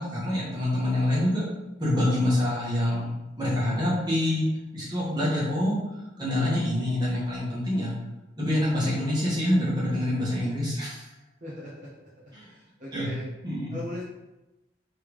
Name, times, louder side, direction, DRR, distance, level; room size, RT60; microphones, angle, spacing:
voice 1, 0.0-1.4 1.8-4.4 4.7-5.8 6.2-7.9 8.4-11.1 12.3-12.5 12.9-13.1 13.4-13.7, left 1 dB, 25° right, -7 dB, 1.3 m, -26 dB
voice 2, 11.4-13.2 13.7-14.0, left 1 dB, 45° right, -7 dB, 0.8 m, -39 dB
3.5 x 3.4 x 3.1 m, 1.0 s
head